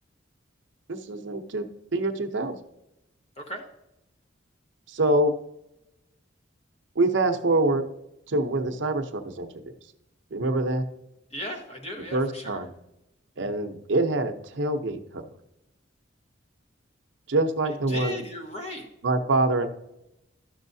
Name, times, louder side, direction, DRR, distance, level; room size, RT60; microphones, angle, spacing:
voice 1, 0.9-1.7 1.9-2.6 4.9-5.3 7.0-7.8 8.3-9.6 10.3-10.9 12.1-12.7 13.4-15.3 17.3-18.2 19.0-19.7, right 2 dB, 70° right, 7 dB, 0.7 m, -25 dB
voice 2, 11.3-12.6 17.6-18.9, left 1 dB, 35° left, 2 dB, 1.3 m, -36 dB
12.5 x 6.3 x 2.7 m, 0.87 s
head